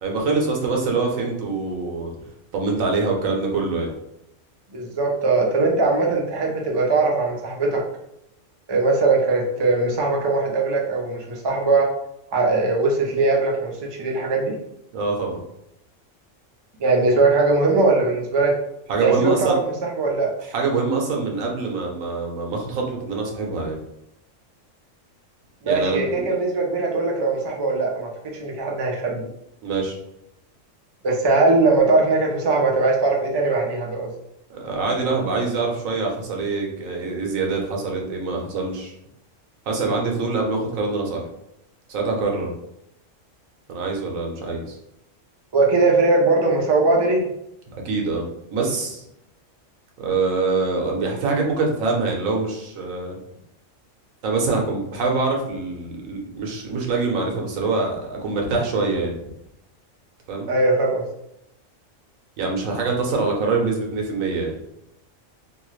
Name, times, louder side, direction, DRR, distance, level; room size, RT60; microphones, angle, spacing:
voice 1, 0.0-2.1 2.5-3.9 14.9-15.4 18.9-19.6 20.5-23.8 25.7-26.2 29.6-30.0 34.5-38.9 39.6-41.3 41.9-42.5 43.7-44.8 47.8-48.2 48.5-49.0 50.0-53.2 54.2-59.1 60.3-60.5 62.4-64.5, right 3 dB, 90° right, 0 dB, 1.2 m, -24 dB
voice 2, 4.7-7.8 8.7-11.9 12.3-14.5 16.8-18.5 19.0-20.3 25.6-29.3 31.0-34.1 45.5-47.3 60.5-61.1, right 3 dB, 40° right, -1 dB, 0.4 m, -20 dB
2.9 x 2.3 x 3.1 m, 0.81 s
omnidirectional pair, 1.4 m